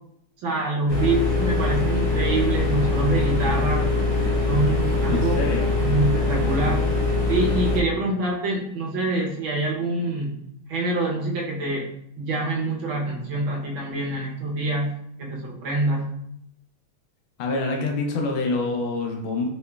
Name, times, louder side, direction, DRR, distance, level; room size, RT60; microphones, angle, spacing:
voice 1, 0.4-3.9 4.5-5.4 5.8-6.9 7.3-10.4 10.7-11.8 12.2-14.9 15.2-16.0, right 2 dB, 70° right, -2 dB, 1.5 m, -25 dB
sound 1, 0.9-7.8, left 3 dB, 50° left, 1.2 m, -23 dB
voice 2, 5.1-5.7 17.4-19.5, left 3 dB, 75° left, 1 dB, 1.4 m, -26 dB
3.7 x 3.1 x 2.2 m, 0.72 s
omnidirectional pair, 2.4 m